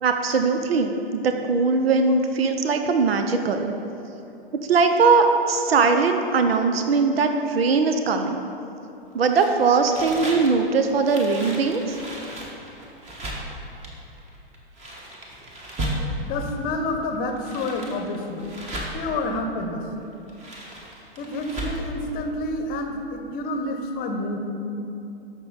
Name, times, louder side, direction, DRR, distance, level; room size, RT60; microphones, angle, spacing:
voice 1, 0.0-3.7 4.7-8.4 9.1-12.0, right 4 dB, 75° right, 6 dB, 0.8 m, -20 dB
sound 1, 9.3-16.5 17.1-19.2 20.1-21.9, right 1 dB, 20° right, 1.7 m, -35 dB
voice 2, 16.2-18.5 18.9-19.9 21.2-24.4, left 2 dB, 30° left, 5 dB, 0.9 m, -29 dB
13.0 x 6.2 x 4.1 m, 2.8 s
figure-of-eight pair, 110°, 30 cm